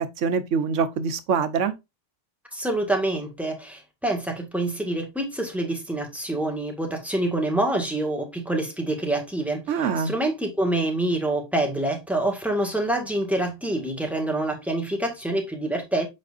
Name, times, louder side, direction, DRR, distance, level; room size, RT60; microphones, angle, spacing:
voice 1, 0.2-1.7 9.7-10.1, right 6 dB, 85° right, 1.2 m, -24 dB
voice 2, 2.5-16.1, right 1 dB, ahead, 1.6 m, -26 dB
7.6 x 5.1 x 2.5 m
omnidirectional pair, 1.2 m